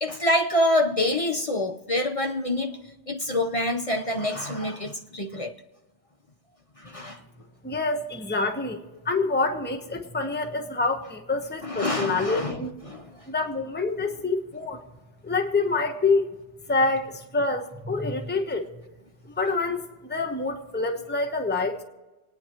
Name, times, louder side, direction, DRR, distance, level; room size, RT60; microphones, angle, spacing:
voice 1, 0.0-2.8 3.1-5.5 6.8-7.2 11.6-12.6 12.9-13.1, left 1 dB, 35° left, 0.8 m, -26 dB
voice 2, 7.6-12.7 13.3-14.8 15.2-16.3 16.7-18.7 19.2-19.8 20.1-21.8, left 3 dB, 10° left, 1.1 m, -26 dB
27.0 x 9.5 x 3.0 m
omnidirectional pair, 1.2 m